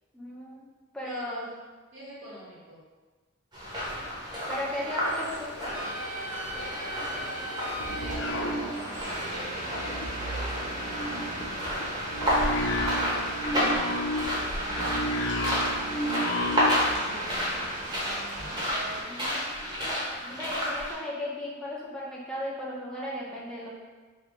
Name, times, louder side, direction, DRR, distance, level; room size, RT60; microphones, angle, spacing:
voice 1, 0.1-0.7 0.9-1.5 4.5-5.5 11.1-11.7 19.0-19.9 20.2-23.7, left 1 dB, 5° left, -6 dB, 0.8 m, -36 dB
voice 2, 1.0-1.5 1.9-2.8 4.6-5.0 6.5-10.5 12.1-17.5, equal, 70° right, -7 dB, 1.3 m, -45 dB
sound 1, 3.5-20.9, equal, 25° right, 1.0 m, -31 dB
sound 2, 5.7-19.0, right 1 dB, 40° right, 0.6 m, -37 dB
sound 3, 7.4-9.2 9.5-17.0, equal, 60° left, 0.4 m, -33 dB
3.3 x 2.9 x 3.8 m, 1.3 s
head